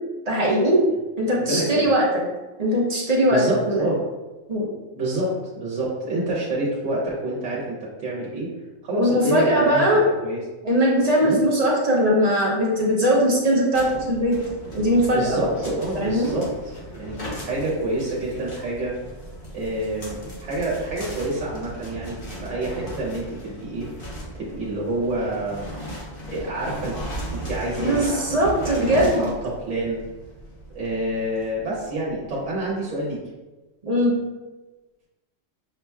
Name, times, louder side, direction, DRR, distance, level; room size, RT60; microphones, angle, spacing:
voice 1, 0.3-0.8 1.2-2.1 2.6-3.9 4.5-4.7 9.0-10.0 10.6-14.4 14.7-15.4 16.0-16.3 27.8-29.3 33.8-34.1, equal, 35° right, -4 dB, 0.8 m, -20 dB
voice 2, 1.4-1.9 3.3-4.0 4.9-8.5 8.8-9.9 10.2-10.4 11.2-11.4 15.1-16.5 16.9-17.2 17.4-18.9 19.5-23.9 24.4-25.7 26.3-27.0 27.3-28.2 28.6-30.0 30.7-33.2, right 1 dB, 65° right, -6 dB, 1.3 m, -27 dB
sound 1, 13.7-32.5, equal, 45° left, 1.1 m, -37 dB
5.9 x 2.9 x 2.3 m, 1.1 s
omnidirectional pair, 1.4 m